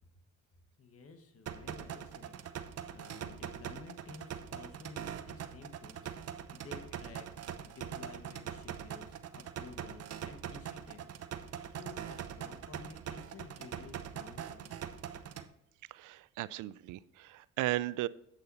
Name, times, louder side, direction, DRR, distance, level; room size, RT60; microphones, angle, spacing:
voice 1, 0.8-14.8, left 4 dB, 50° left, 7 dB, 1.5 m, -53 dB
sound 1, 1.5-15.5, right 9 dB, 55° right, 0.8 m, -43 dB
voice 2, 15.9-18.1, right 16 dB, 85° right, 19 dB, 0.5 m, -36 dB
9.0 x 7.8 x 4.1 m, 0.77 s
cardioid pair, 90°, 30 cm